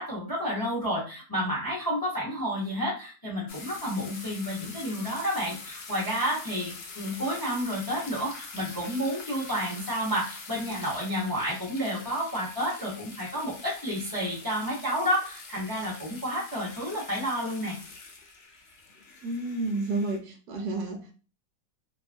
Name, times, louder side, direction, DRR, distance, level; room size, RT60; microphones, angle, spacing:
voice 1, 0.0-17.8, equal, 30° left, 0.4 m, -30 dB
sound 1, 3.5-20.2, left 4 dB, 85° left, 0.5 m, -44 dB
voice 2, 19.2-21.1, right 2 dB, 75° right, 1.1 m, -31 dB
2.9 x 2.3 x 2.4 m
omnidirectional pair, 1.8 m